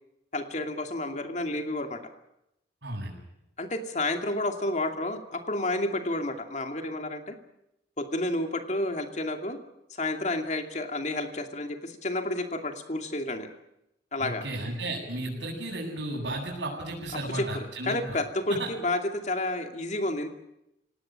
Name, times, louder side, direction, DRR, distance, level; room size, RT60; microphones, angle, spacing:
voice 1, 0.3-2.0 3.6-7.4 8.0-9.6 10.0-13.5 14.1-14.5 17.3-20.3, left 2 dB, 40° left, 5 dB, 2.5 m, -30 dB
voice 2, 2.8-3.2 14.2-18.2, right 1 dB, 85° right, -6 dB, 7.3 m, -34 dB
26.0 x 18.5 x 8.9 m, 0.86 s
head